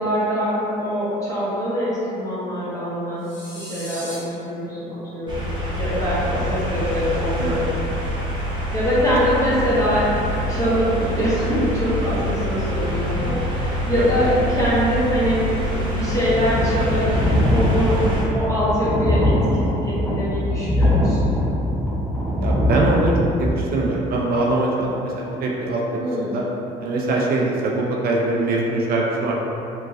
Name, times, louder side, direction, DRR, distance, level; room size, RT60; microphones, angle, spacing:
voice 1, 0.0-3.3 3.5-5.4 5.8-7.7 8.7-15.5 15.9-17.1 17.5-18.0 18.3-21.3 25.9-26.3, equal, 20° left, -10 dB, 1.2 m, -23 dB
sound 1, 3.2-4.2, equal, 50° left, 1.1 m, -37 dB
sound 2, 5.3-18.2, equal, 30° right, 1.1 m, -25 dB
sound 3, 16.3-23.5, left 1 dB, 5° left, 0.7 m, -21 dB
voice 2, 22.4-23.1 23.4-26.4 26.8-29.3, right 2 dB, 60° right, -2 dB, 0.6 m, -23 dB
4.6 x 3.0 x 2.5 m, 3.0 s
cardioid pair, 110°, 17 cm